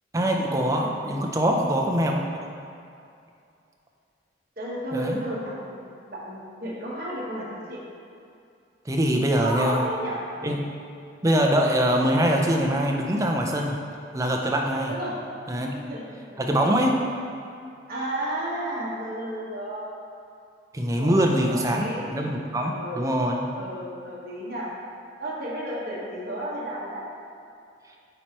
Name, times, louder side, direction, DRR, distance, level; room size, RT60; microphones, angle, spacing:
voice 1, 0.1-2.2 4.9-5.2 8.9-9.9 10.4-10.7 11.2-13.8 14.1-14.9 15.5-15.7 16.4-17.0 20.7-21.9 22.1-23.4, equal, 15° right, 0 dB, 0.5 m, -23 dB
voice 2, 0.7-1.1 4.6-5.8 6.1-7.8 9.4-10.2 14.9-15.2 15.6-16.4 17.9-19.9 21.0-22.2 22.6-23.1 23.5-24.7 25.2-27.0, right 1 dB, 50° right, -6 dB, 1.3 m, -33 dB
8.8 x 4.4 x 3.0 m, 2.5 s
head